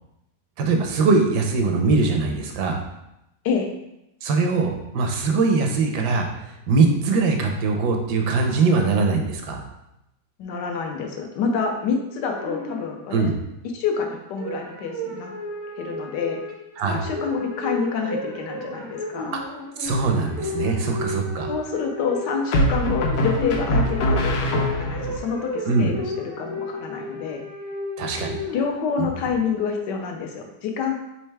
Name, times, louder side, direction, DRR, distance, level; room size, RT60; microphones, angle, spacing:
voice 1, 0.6-2.8 4.2-9.6 13.1-13.3 16.8-17.0 19.3-19.4 19.8-21.5 25.7-25.9 28.0-28.4 29.0-29.1, right 4 dB, 80° right, 3 dB, 1.2 m, -22 dB
voice 2, 10.4-13.3 13.7-15.3 15.8-16.4 16.9-19.4 21.5-27.4 28.5-30.9, left 5 dB, 85° left, 3 dB, 1.4 m, -27 dB
sound 1, 12.3-13.2 14.4-29.2, left 2 dB, 35° right, 0.4 m, -33 dB
sound 2, 19.9-20.4 22.5-25.2, equal, 70° left, 1.1 m, -23 dB
4.4 x 3.6 x 3.3 m, 0.87 s
omnidirectional pair, 1.8 m